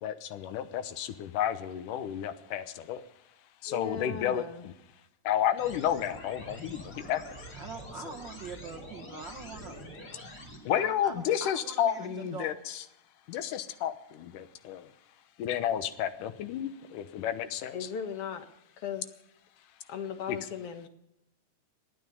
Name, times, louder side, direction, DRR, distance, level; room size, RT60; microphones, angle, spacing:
voice 1, 0.0-3.0 3.6-4.7 5.2-7.4 8.1-8.2 10.6-12.8 13.3-14.9 15.4-17.9 20.3-20.4, left 10 dB, 90° left, 11 dB, 2.6 m, -31 dB
voice 2, 3.7-4.6 10.3-10.4 17.7-18.5 18.8-19.1 19.9-20.9, left 7 dB, 55° left, 8 dB, 2.0 m, -37 dB
sound 1, 5.6-10.6, equal, 30° left, 3.1 m, -45 dB
voice 3, 7.6-9.8 10.8-12.5, right 5 dB, 60° right, 3 dB, 1.2 m, -43 dB
26.0 x 9.6 x 5.4 m, 0.83 s
omnidirectional pair, 3.6 m